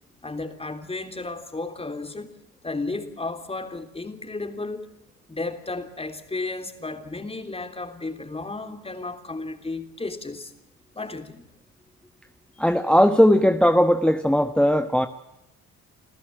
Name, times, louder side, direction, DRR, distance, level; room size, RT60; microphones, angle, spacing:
voice 1, 0.2-2.3 2.6-4.9 5.3-10.5 10.9-11.5, left 3 dB, 20° left, 3.4 m, -33 dB
voice 2, 12.6-15.1, equal, 5° left, 1.2 m, -18 dB
27.5 x 15.0 x 7.7 m
cardioid pair, 90°, 30 cm